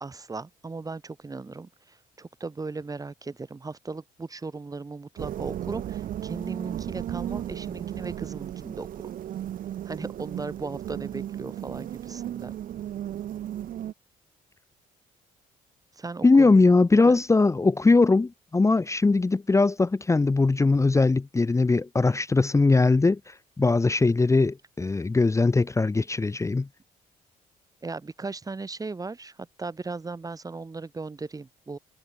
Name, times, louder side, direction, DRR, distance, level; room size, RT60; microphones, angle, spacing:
voice 1, 0.0-8.9 9.8-12.6 15.9-16.5 16.9-17.2 27.8-31.8, right 3 dB, 20° right, 1.2 m, -37 dB
sound 1, 5.2-13.9, right 11 dB, 55° right, 0.6 m, -35 dB
voice 2, 16.2-26.7, left 3 dB, 20° left, 0.9 m, -21 dB
cardioid pair, 90°, 16 cm